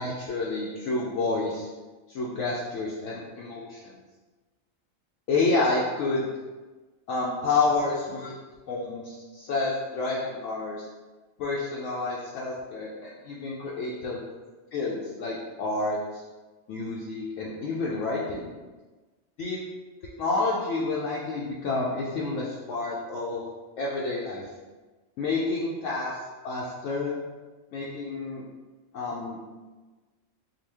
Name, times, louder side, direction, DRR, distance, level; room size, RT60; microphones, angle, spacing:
voice 1, 0.0-1.7 2.1-3.9 5.3-6.3 7.1-8.3 8.7-10.9 11.4-14.2 14.7-16.2 16.7-18.5 19.4-19.6 20.2-24.4 25.2-26.1 26.4-27.2 27.7-28.4 28.9-29.4, left 3 dB, 75° left, -5 dB, 0.9 m, -29 dB
3.8 x 2.3 x 3.3 m, 1.3 s
omnidirectional pair, 1.4 m